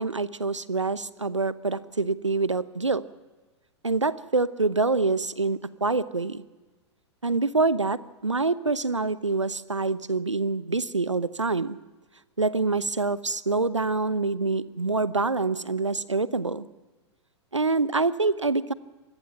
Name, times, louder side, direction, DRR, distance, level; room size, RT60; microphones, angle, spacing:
voice 1, 0.0-3.0 3.8-6.4 7.2-11.8 12.4-16.7 17.5-18.7, right 3 dB, 85° right, 17 dB, 0.9 m, -26 dB
26.5 x 20.5 x 5.9 m, 1.3 s
figure-of-eight pair, 100°, 15 cm